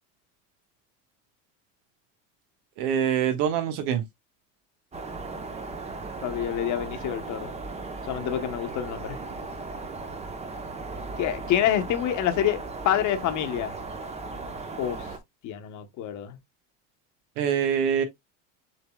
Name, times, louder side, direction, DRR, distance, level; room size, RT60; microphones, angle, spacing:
voice 1, 2.8-4.0 17.4-18.0, right 8 dB, 80° right, 1.3 m, -24 dB
sound 1, 4.9-15.2, right 3 dB, 15° right, 0.8 m, -37 dB
voice 2, 6.2-7.5 8.1-9.2 11.2-13.7 14.8-15.0 15.4-16.4, left 10 dB, 50° left, 1.0 m, -27 dB
7.0 x 3.4 x 2.2 m
supercardioid pair, 125°, 38 cm